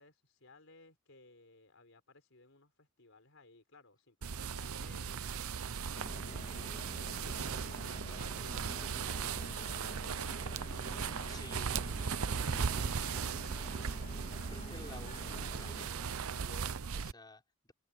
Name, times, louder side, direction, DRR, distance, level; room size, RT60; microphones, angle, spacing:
voice 1, 0.0-5.5 6.2-8.1 8.3-10.7 11.0-14.0, left 3 dB, 65° left, 4.3 m, -61 dB
sound 1, 4.2-17.1, right 6 dB, 80° right, 0.7 m, -38 dB
sound 2, 5.9-15.9, left 1 dB, 35° left, 2.9 m, -50 dB
voice 2, 11.3-12.8 14.5-17.7, left 2 dB, 20° left, 6.3 m, -54 dB
head